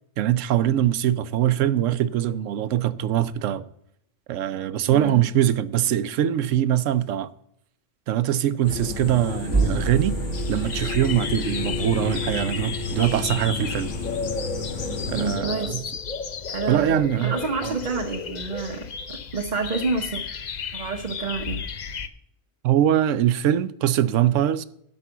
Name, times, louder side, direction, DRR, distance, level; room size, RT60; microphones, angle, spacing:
voice 1, 0.2-3.7 4.3-7.3 8.1-10.2 10.5-13.9 15.1-15.9 16.7-17.8 22.6-24.6, right 11 dB, 85° right, 1.0 m, -23 dB
voice 2, 4.9-5.2 15.1-15.8 16.5-16.9 17.2-20.2 20.7-21.6, right 4 dB, 40° right, 1.0 m, -28 dB
sound 1, 8.6-15.4, left 4 dB, 75° left, 2.5 m, -31 dB
sound 2, 9.5-13.4, right 4 dB, 20° right, 1.2 m, -30 dB
sound 3, 10.3-22.1, left 5 dB, 45° left, 0.6 m, -34 dB
12.0 x 5.4 x 6.8 m
omnidirectional pair, 1.3 m